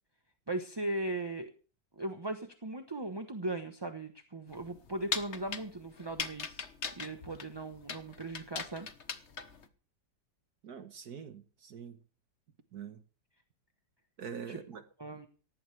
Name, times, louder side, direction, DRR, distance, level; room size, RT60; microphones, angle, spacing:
voice 1, 0.5-1.5 2.0-6.7 7.0-8.9 14.5-14.6 15.0-15.3, right 2 dB, 20° right, 0.8 m, -38 dB
sound 1, 4.5-9.7, left 5 dB, 45° left, 1.4 m, -40 dB
voice 2, 10.6-12.0 12.7-13.0 14.2-14.8, right 7 dB, 60° right, 1.6 m, -44 dB
18.0 x 15.0 x 3.4 m
omnidirectional pair, 1.9 m